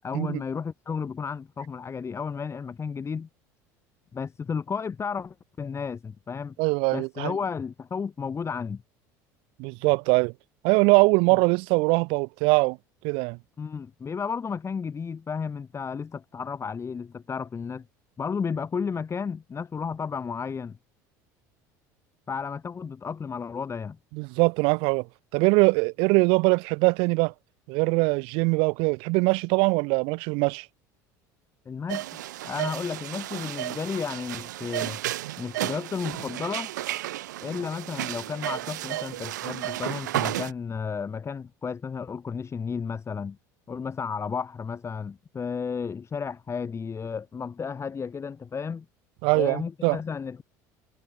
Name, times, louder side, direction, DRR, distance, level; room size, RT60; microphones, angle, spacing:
voice 1, 0.0-3.3 4.1-6.5 6.9-8.8 11.3-11.4 13.6-17.8 18.2-20.8 22.3-24.0 31.7-32.1 32.4-35.0 35.4-36.7 37.4-43.4 43.7-48.9 49.3-50.4, left 6 dB, 30° left, 5.9 m, -33 dB
voice 2, 6.6-7.3 9.6-10.3 10.6-12.8 13.0-13.4 24.1-25.1 25.3-27.3 27.7-30.7 49.2-50.0, right 30 dB, 70° right, 1.7 m, -22 dB
sound 1, 31.9-40.5, right 15 dB, 85° right, 4.7 m, -33 dB
hypercardioid pair, 85°, 9 cm